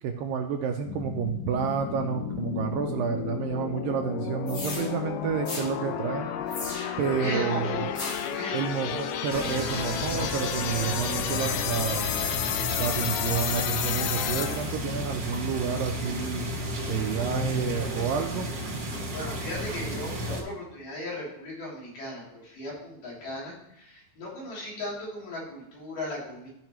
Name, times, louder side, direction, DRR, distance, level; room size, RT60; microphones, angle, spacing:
voice 1, 0.0-6.3 7.0-7.9 8.5-12.1 12.8-16.5 16.9-18.5, right 7 dB, 80° right, 4 dB, 2.1 m, -30 dB
sound 1, 0.8-14.9, left 9 dB, 90° left, 1.9 m, -32 dB
sound 2, 4.5-4.9 5.4-5.7 6.5-7.1 7.9-8.4, left 2 dB, 40° left, 2.2 m, -36 dB
voice 2, 7.0-9.4 11.9-12.1 19.1-26.5, left 1 dB, 75° left, -5 dB, 5.0 m, -37 dB
sound 3, 9.3-20.4, equal, 35° right, 1.5 m, -33 dB
14.0 x 5.7 x 3.0 m, 0.82 s
omnidirectional pair, 4.5 m